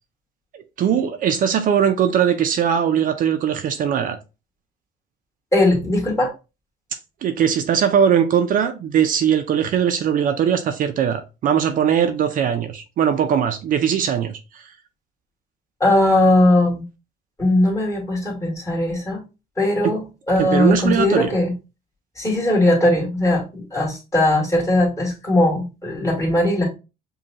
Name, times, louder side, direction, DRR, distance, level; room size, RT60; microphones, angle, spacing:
voice 1, 0.5-4.2 7.2-14.6 19.8-20.0 20.4-21.3, right 8 dB, 55° right, 0.5 m, -20 dB
voice 2, 5.5-6.3 15.8-16.8 17.4-19.2 19.6-21.5 22.2-26.7, left 1 dB, 15° left, 2.0 m, -19 dB
5.2 x 2.3 x 2.8 m
cardioid pair, 110°, 17 cm